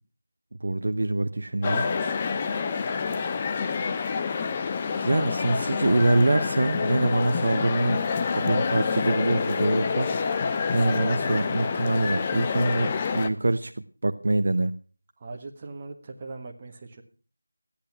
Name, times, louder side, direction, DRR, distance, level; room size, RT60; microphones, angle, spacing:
voice 1, 0.6-1.9 5.0-8.0 8.3-10.1 10.7-14.7, right 2 dB, 50° right, 9 dB, 0.8 m, -24 dB
sound 1, 1.6-13.3, left 5 dB, 20° left, 0.7 m, -27 dB
voice 2, 15.2-17.0, right 3 dB, 20° right, 3 dB, 1.6 m, -40 dB
14.5 x 10.5 x 5.8 m, 0.38 s
figure-of-eight pair, 170°, 0 cm